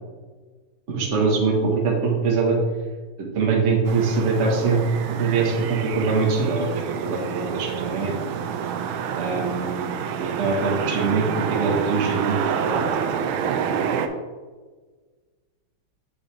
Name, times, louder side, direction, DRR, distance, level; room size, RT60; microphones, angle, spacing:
voice 1, 0.9-2.6 3.2-8.1 9.2-12.9, right 4 dB, 40° right, -1 dB, 1.5 m, -23 dB
sound 1, 3.8-14.1, right 8 dB, 85° right, 1.4 m, -28 dB
8.1 x 5.8 x 3.3 m, 1.4 s
omnidirectional pair, 2.2 m